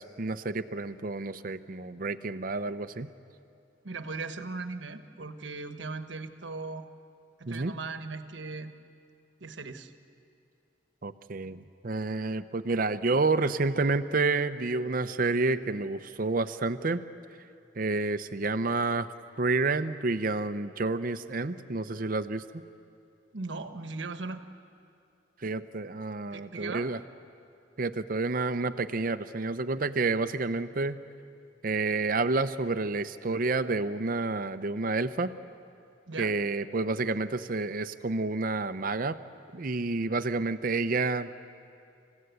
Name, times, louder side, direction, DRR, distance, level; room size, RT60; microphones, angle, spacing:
voice 1, 0.0-3.1 7.5-7.7 11.0-17.0 17.8-19.1 19.4-22.4 25.4-27.0 27.8-31.0 31.6-35.3 36.2-39.2 39.5-41.3, right 3 dB, 50° right, 11 dB, 0.7 m, -29 dB
voice 2, 3.8-6.9 7.4-8.7 9.4-9.9 23.3-24.4 26.3-26.9 36.1-36.3, right 3 dB, 75° right, 9 dB, 1.2 m, -38 dB
28.5 x 15.5 x 8.2 m, 2.5 s
head